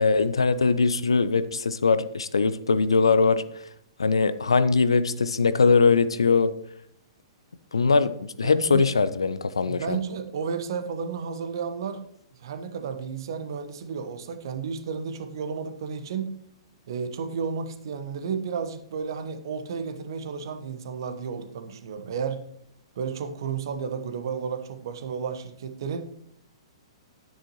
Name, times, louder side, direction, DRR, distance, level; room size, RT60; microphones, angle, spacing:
voice 1, 0.0-3.4 4.0-6.5 7.7-10.0, left 4 dB, 70° left, 15 dB, 0.6 m, -21 dB
voice 2, 8.4-8.9 9.7-12.0 12.4-16.3 16.8-22.4 22.9-26.0, right 6 dB, 55° right, 9 dB, 1.2 m, -32 dB
10.5 x 9.4 x 3.1 m, 0.71 s
figure-of-eight pair, 110°, 3 cm